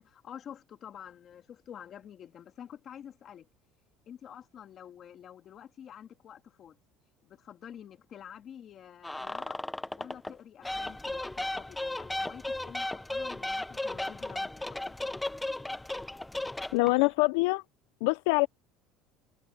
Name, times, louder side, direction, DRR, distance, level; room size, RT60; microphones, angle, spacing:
voice 1, 0.0-3.5 4.1-6.8 7.2-9.6 9.9-15.0, left 9 dB, 35° left, 2.9 m, -48 dB
sound 1, 9.0-10.3 10.6-17.1, left 2 dB, 5° left, 0.5 m, -35 dB
voice 2, 16.7-17.6 18.0-18.5, left 25 dB, 90° left, 0.3 m, -24 dB
cardioid pair, 160°, 0 cm